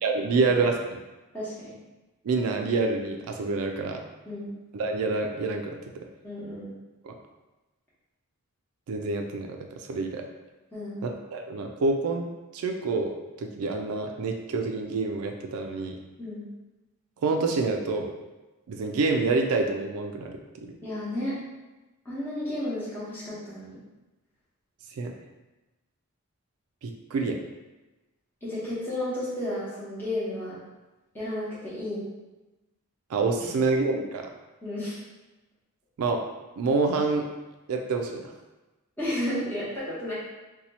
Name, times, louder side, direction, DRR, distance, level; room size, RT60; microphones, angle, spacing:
voice 1, 0.0-1.0 2.2-4.0 4.7-5.8 7.0-7.1 8.9-10.2 11.0-16.0 17.2-18.1 18.7-20.4 25.0-25.1 26.8-27.4 33.1-34.3 36.0-36.2 36.6-37.3 37.7-38.3, right 3 dB, 75° right, 3 dB, 0.3 m, -27 dB
voice 2, 1.3-1.7 4.3-4.5 6.2-6.7 10.7-11.1 16.2-16.4 20.8-21.4 22.0-23.8 28.4-30.6 31.1-32.0 33.4-33.5 34.6-35.0 39.0-40.1, left 1 dB, 10° left, -11 dB, 0.9 m, -32 dB
2.8 x 2.2 x 4.1 m, 1.1 s
head